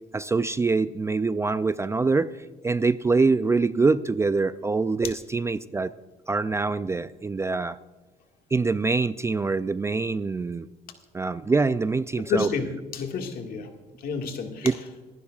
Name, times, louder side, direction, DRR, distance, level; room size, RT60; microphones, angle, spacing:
voice 1, 0.1-2.3 2.6-5.9 6.3-7.8 8.5-10.7 11.1-12.5 14.6-14.7, right 4 dB, 15° right, 14 dB, 0.3 m, -24 dB
voice 2, 12.3-13.7 14.0-14.8, left 5 dB, 60° left, 4 dB, 1.9 m, -29 dB
25.0 x 11.5 x 2.4 m, 1.3 s
cardioid pair, 110°, 17 cm